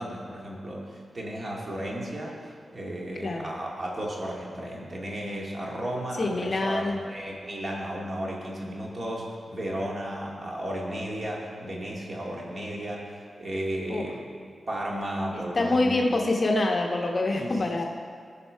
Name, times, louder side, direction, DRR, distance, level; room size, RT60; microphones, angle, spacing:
voice 1, 0.0-14.3 14.7-16.2 17.4-17.8, right 1 dB, 45° right, -3 dB, 2.1 m, -34 dB
voice 2, 6.2-7.0 13.9-14.0 15.5-17.8, left 2 dB, 40° left, 1 dB, 1.0 m, -25 dB
17.0 x 5.7 x 4.6 m, 2.1 s
wide cardioid pair, 115°, 0 cm